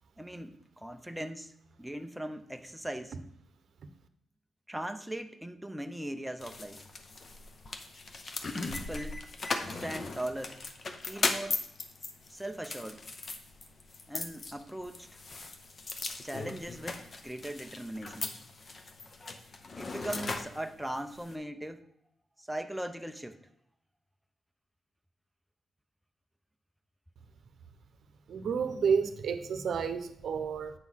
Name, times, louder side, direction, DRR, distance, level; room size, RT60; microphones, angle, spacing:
voice 1, 0.2-1.5 1.8-3.2 4.7-6.8 8.7-9.2 9.7-10.6 11.0-11.6 12.3-13.0 14.1-15.2 16.1-18.5 19.7-21.8 22.4-23.4, right 1 dB, 5° right, 6 dB, 0.5 m, -39 dB
sound 1, 6.4-21.3, left 3 dB, 40° left, 0.8 m, -38 dB
voice 2, 28.3-30.7, right 6 dB, 70° right, 10 dB, 0.7 m, -30 dB
8.0 x 3.8 x 6.2 m, 0.70 s
cardioid pair, 115°, 0 cm